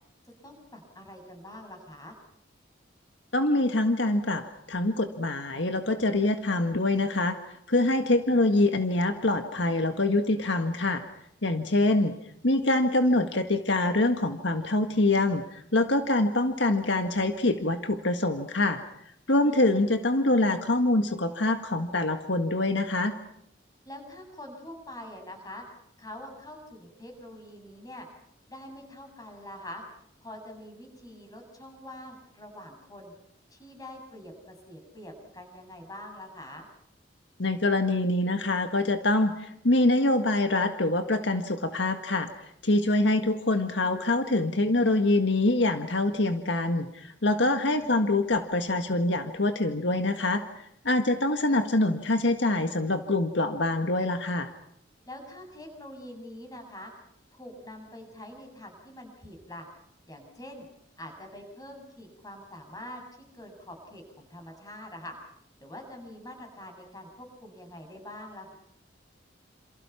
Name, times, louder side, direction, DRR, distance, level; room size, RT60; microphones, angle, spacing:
voice 1, 0.4-2.2 19.3-19.6 23.8-25.6 26.0-28.1 28.5-29.8 30.2-33.1 33.5-36.7 47.2-48.0 55.1-56.9 57.3-59.7 60.1-60.7 61.0-63.0 63.3-65.2 65.6-68.6, left 1 dB, 20° left, 3 dB, 7.7 m, -45 dB
voice 2, 3.3-4.4 4.7-7.3 7.7-11.0 11.4-12.1 12.4-18.8 19.3-23.1 37.4-42.3 42.6-50.4 50.9-54.5, left 2 dB, 70° left, 6 dB, 1.7 m, -25 dB
28.5 x 28.5 x 5.9 m, 0.73 s
head